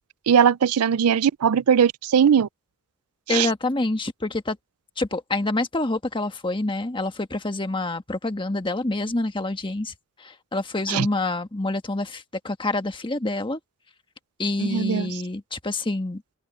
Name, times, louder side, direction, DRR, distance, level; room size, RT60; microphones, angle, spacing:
voice 1, 0.3-2.5 3.3-3.5 10.9-11.1 14.6-15.1, right 7 dB, 90° right, 0.4 m, -19 dB
voice 2, 3.3-4.6 5.0-9.9 10.2-13.6 14.4-16.2, left 2 dB, 25° left, 1.4 m, -27 dB
open air
head